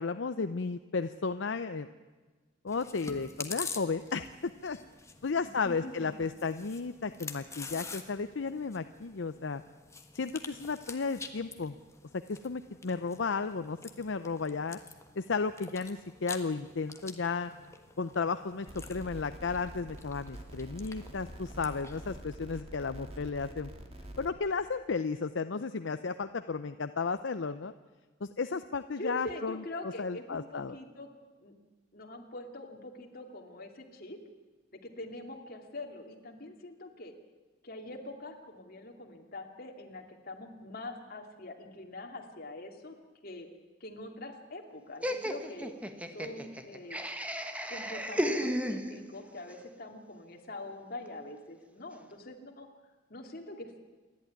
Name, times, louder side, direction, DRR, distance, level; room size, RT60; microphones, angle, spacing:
voice 1, 0.0-1.9 2.6-4.8 5.2-9.6 10.1-11.8 12.3-14.8 15.2-17.5 18.0-23.7 24.2-27.7 28.2-29.6 30.0-30.8, left 4 dB, 75° left, 10 dB, 0.6 m, -34 dB
Chewing mastication, 2.7-22.2, left 4 dB, 15° left, 1.4 m, -47 dB
voice 2, 5.4-6.1 23.2-23.3 29.0-31.1 31.4-31.5 31.9-34.2 34.8-37.1 37.6-42.9 43.2-43.5 43.8-45.7 46.1-47.0 47.7-52.7 53.1-53.8, left 1 dB, 50° left, 3 dB, 2.6 m, -44 dB
sound 1, 18.7-24.3, right 1 dB, 35° right, 2.5 m, -46 dB
Laughter, 45.0-49.3, equal, 5° right, 1.3 m, -34 dB
28.0 x 11.5 x 9.6 m, 1.3 s
head